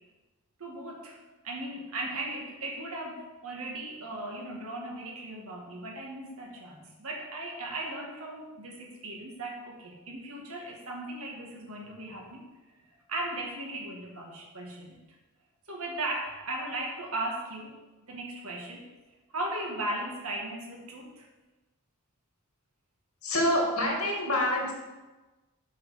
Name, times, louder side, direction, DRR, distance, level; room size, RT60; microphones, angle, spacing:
voice 1, 0.6-1.2 1.4-12.4 13.1-15.0 15.7-17.8 18.0-18.8 19.3-21.3, right 2 dB, 75° right, 0 dB, 1.9 m, -37 dB
voice 2, 23.2-24.7, left 1 dB, 85° left, -1 dB, 2.4 m, -26 dB
7.6 x 5.5 x 5.6 m, 1.2 s
head